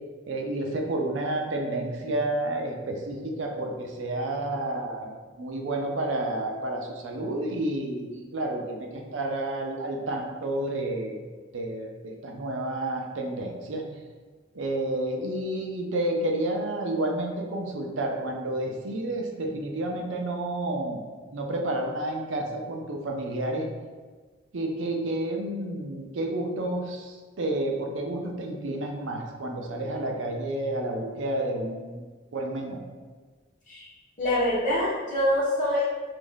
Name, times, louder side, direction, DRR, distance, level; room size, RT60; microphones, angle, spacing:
voice 1, 0.3-11.2 11.5-13.8 14.5-21.0 21.3-23.7 24.5-32.0 32.3-32.8, right 1 dB, 75° right, 1 dB, 0.5 m, -30 dB
voice 2, 34.2-35.8, left 1 dB, 45° left, -8 dB, 1.4 m, -25 dB
3.0 x 2.5 x 3.8 m, 1.4 s
head